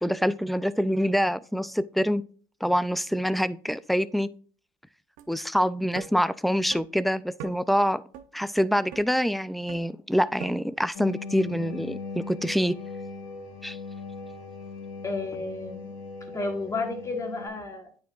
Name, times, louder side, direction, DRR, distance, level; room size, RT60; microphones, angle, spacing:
voice 1, 0.0-2.2 2.6-4.3 5.3-8.0 8.3-12.7 13.6-13.8, equal, ahead, 0.3 m, -25 dB
sound 1, 5.2-5.3 6.0-6.1 6.7-6.8 7.4-7.5 8.1-8.3 8.9-9.1 9.7-9.8 10.4-10.5, right 10 dB, 80° right, 0.6 m, -40 dB
sound 2, 10.9-17.5, left 4 dB, 85° left, 2.5 m, -39 dB
voice 2, 15.0-15.9 16.3-17.9, left 3 dB, 25° left, 1.6 m, -32 dB
9.1 x 4.6 x 2.4 m
supercardioid pair, 85°, 13 cm